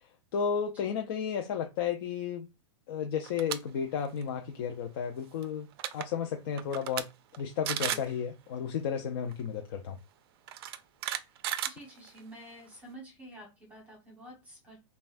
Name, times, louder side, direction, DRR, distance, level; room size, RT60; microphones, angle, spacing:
voice 1, 0.3-2.5 2.9-5.7 5.9-7.1 7.3-10.0, left 7 dB, 50° left, 0.5 m, -33 dB
sound 1, 3.2-3.6 4.0-4.2 5.4-5.5 5.7-6.1 6.6-7.0 7.3-7.4 7.7-8.1 9.3-9.4 10.5-12.3, right 11 dB, 55° right, 0.4 m, -34 dB
voice 2, 11.6-14.8, right 1 dB, 10° right, 1.2 m, -49 dB
5.5 x 2.3 x 2.5 m
supercardioid pair, 160°, 15 cm